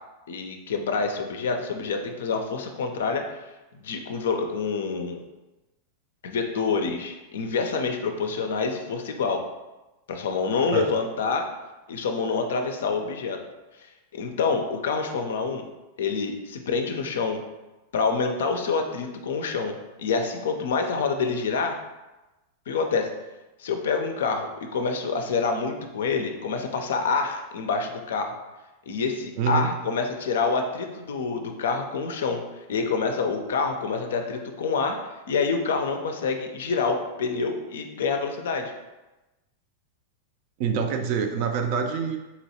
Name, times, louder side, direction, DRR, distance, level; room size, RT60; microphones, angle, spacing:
voice 1, 0.3-3.3 3.7-5.2 6.2-9.4 10.1-11.5 11.9-13.4 13.8-13.9 14.1-15.6 16.0-17.4 17.9-21.8 22.7-23.1 23.6-28.3 28.9-32.4 32.7-38.7, left 4 dB, 60° left, 5 dB, 0.4 m, -27 dB
voice 2, 29.4-29.7 40.6-42.2, right 6 dB, 45° right, 5 dB, 0.4 m, -25 dB
4.0 x 3.0 x 2.8 m, 1.1 s
figure-of-eight pair, 90°, 0 cm